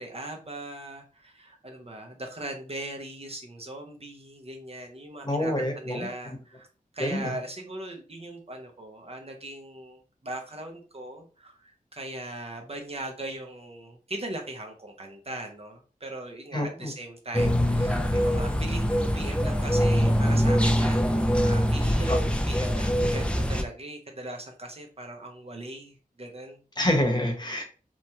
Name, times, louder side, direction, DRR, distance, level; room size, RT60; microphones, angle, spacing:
voice 1, 0.0-6.7 6.9-21.0 21.4-26.6, right 1 dB, 45° right, 2 dB, 0.6 m, -39 dB
voice 2, 5.2-6.1 7.0-7.3 16.5-16.9 22.1-22.2 26.8-27.6, left 1 dB, 30° left, 1 dB, 0.9 m, -27 dB
sound 1, 17.3-23.6, equal, 5° left, 0.4 m, -23 dB
2.9 x 2.2 x 2.7 m, 0.37 s
wide cardioid pair, 65°, 15 cm